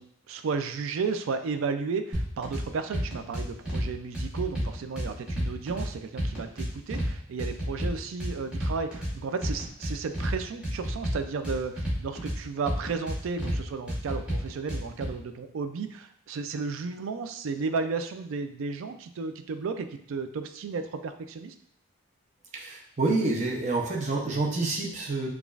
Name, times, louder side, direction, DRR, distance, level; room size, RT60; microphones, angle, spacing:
voice 1, 0.0-21.5, right 4 dB, 70° right, 9 dB, 0.3 m, -33 dB
sound 1, 2.1-2.6 2.9-3.9 4.1-5.9 6.2-7.1 7.4-9.1 9.4-10.3 10.6-12.4 12.7-13.6 13.9-15.1, equal, 5° right, 1.0 m, -30 dB
voice 2, 22.5-25.3, right 3 dB, 35° right, -2 dB, 0.6 m, -28 dB
4.9 x 2.4 x 2.4 m, 0.69 s
head